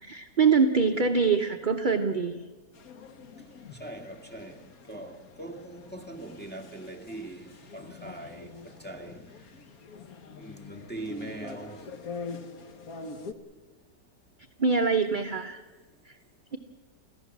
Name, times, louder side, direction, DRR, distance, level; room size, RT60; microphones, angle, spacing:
voice 1, 0.0-2.4 14.6-15.6 16.0-16.2, right 5 dB, 40° right, 0.7 m, -24 dB
sound 1, 2.7-13.3, left 4 dB, 55° left, 1.7 m, -44 dB
voice 2, 3.8-4.6 4.9-9.4 10.4-11.9, right 1 dB, 5° left, 1.8 m, -41 dB
28.5 x 15.0 x 7.3 m
omnidirectional pair, 1.9 m